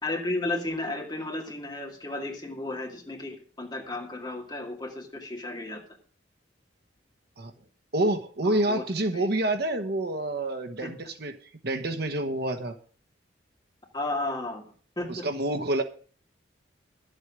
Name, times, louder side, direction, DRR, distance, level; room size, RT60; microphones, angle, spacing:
voice 1, 0.0-5.8 8.4-8.8 9.1-9.3 10.8-10.9 13.9-14.6 15.0-15.3, left 2 dB, 20° left, 1 dB, 2.3 m, -33 dB
voice 2, 7.9-11.3 11.6-12.8 15.1-15.8, right 1 dB, 55° right, 6 dB, 1.1 m, -27 dB
11.5 x 8.0 x 6.2 m, 0.42 s
head